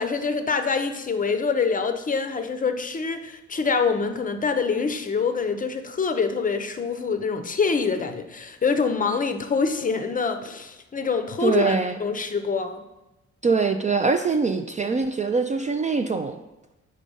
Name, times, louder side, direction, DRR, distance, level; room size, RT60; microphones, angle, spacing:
voice 1, 0.0-12.9, left 5 dB, 25° left, 7 dB, 0.6 m, -25 dB
voice 2, 11.4-12.0 13.4-16.4, right 4 dB, 25° right, 7 dB, 0.3 m, -23 dB
4.9 x 4.3 x 5.4 m, 0.98 s
cardioid pair, 90°, 30 cm